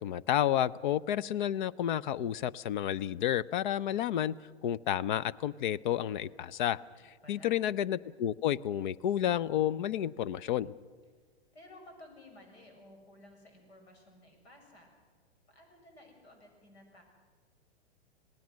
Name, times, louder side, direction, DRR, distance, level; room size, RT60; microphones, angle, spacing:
voice 1, 0.0-10.7, left 11 dB, 50° left, 19 dB, 0.6 m, -31 dB
voice 2, 7.0-7.6 11.5-14.9 15.5-17.0, left 1 dB, 75° left, 3 dB, 7.0 m, -55 dB
27.0 x 18.5 x 6.4 m, 1.5 s
figure-of-eight pair, 115°, 32 cm